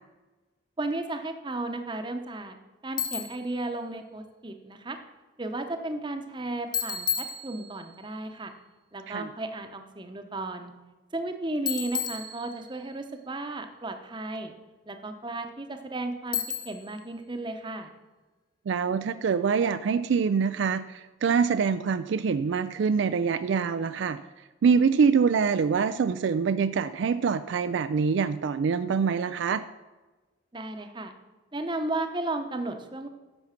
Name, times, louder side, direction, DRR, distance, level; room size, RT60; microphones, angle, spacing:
voice 1, 0.8-2.6 2.8-5.0 5.4-8.5 8.9-10.7 11.1-14.5 14.9-17.9 30.5-31.1 31.5-33.1, right 2 dB, 25° right, 6 dB, 0.8 m, -34 dB
Bicycle, 3.0-3.5 6.7-8.0 11.7-12.9 16.3-17.0, left 6 dB, 20° left, 0.8 m, -32 dB
voice 2, 18.7-24.2 24.6-29.6, right 6 dB, 60° right, 12 dB, 0.3 m, -25 dB
10.5 x 7.1 x 5.8 m, 1.2 s
head